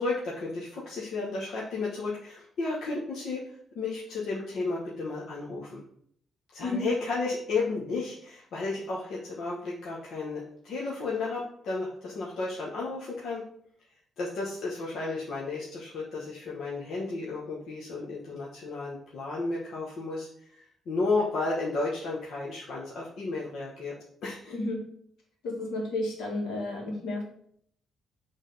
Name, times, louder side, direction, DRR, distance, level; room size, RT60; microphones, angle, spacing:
voice 1, 0.0-3.4 3.7-5.8 6.5-13.4 14.2-24.0 24.2-24.5, left 3 dB, 65° left, -5 dB, 1.1 m, -33 dB
voice 2, 24.5-24.8 25.4-27.2, left 2 dB, 90° left, -2 dB, 2.2 m, -32 dB
6.5 x 3.6 x 4.0 m, 0.66 s
cardioid pair, 150°, 0 cm